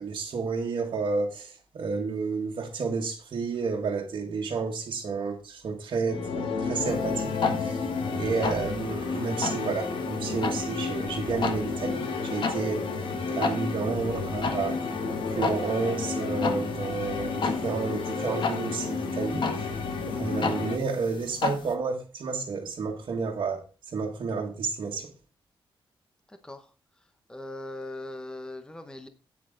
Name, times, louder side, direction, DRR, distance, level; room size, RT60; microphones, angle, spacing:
voice 1, 0.0-7.3 7.6-7.8 8.2-12.8 13.3-14.8 15.3-19.7 20.1-23.6 23.9-25.1, right 4 dB, 60° right, 1.8 m, -31 dB
sound 1, 6.1-20.8, left 4 dB, 85° left, 1.9 m, -31 dB
sound 2, 6.9-21.7, left 4 dB, 60° left, 1.5 m, -35 dB
voice 2, 27.3-29.1, left 1 dB, 10° left, 0.9 m, -39 dB
8.7 x 8.7 x 3.8 m
wide cardioid pair, 125°, 9 cm